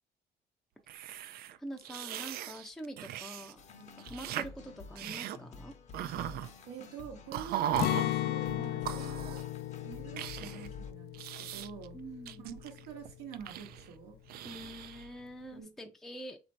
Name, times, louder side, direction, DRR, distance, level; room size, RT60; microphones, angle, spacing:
sound 1, 0.9-3.5 3.8-4.5 5.0-5.4 5.9-6.5 7.3-8.0 8.9-9.5 10.2-10.7 11.1-11.9 12.3-13.9 14.3-15.1, right 11 dB, 65° right, 0.4 m, -38 dB
voice 1, 1.6-5.8 11.9-12.5 14.4-16.4, right 1 dB, ahead, 0.5 m, -45 dB
sound 2, 3.6-10.9, left 4 dB, 45° left, 0.8 m, -50 dB
voice 2, 6.6-9.4 9.8-12.0 12.4-14.2 15.5-15.7, right 7 dB, 85° right, 1.0 m, -47 dB
Acoustic guitar, 7.8-13.7 14.0-14.1 14.6-15.1, left 14 dB, 70° left, 0.4 m, -36 dB
4.1 x 2.6 x 4.4 m
cardioid pair, 110°, 17 cm